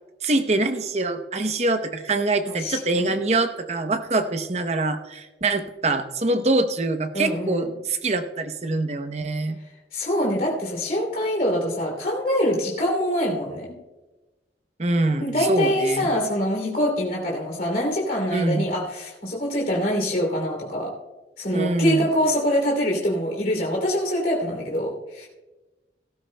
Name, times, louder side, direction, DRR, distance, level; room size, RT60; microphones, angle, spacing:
voice 1, 0.2-9.6 14.8-16.1 18.3-18.7 21.5-22.1, right 2 dB, 35° right, 8 dB, 0.7 m, -24 dB
voice 2, 2.4-3.2 7.1-7.7 9.9-13.8 15.2-20.9 21.4-25.3, equal, 50° left, -1 dB, 2.8 m, -24 dB
17.5 x 13.5 x 2.2 m, 1.1 s
head